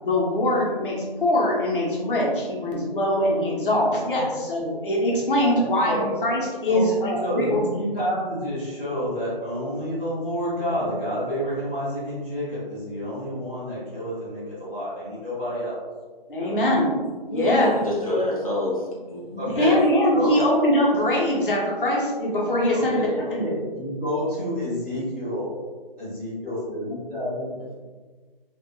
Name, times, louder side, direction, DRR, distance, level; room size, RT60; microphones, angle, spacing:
voice 1, 0.0-7.6 16.3-17.0 17.3-17.7 19.4-23.4, left 1 dB, 60° left, -4 dB, 0.9 m, -22 dB
voice 2, 5.5-6.0 6.7-6.8 7.2-15.8 16.4-16.7 17.8-18.2 19.4-19.8 20.1-20.4 22.7-25.5 26.0-27.6, equal, 10° left, -16 dB, 1.1 m, -29 dB
voice 3, 17.3-18.8 19.1-19.4, left 1 dB, 35° left, -6 dB, 0.6 m, -26 dB
3.8 x 2.4 x 2.2 m, 1.4 s
figure-of-eight pair, 170°, 30 cm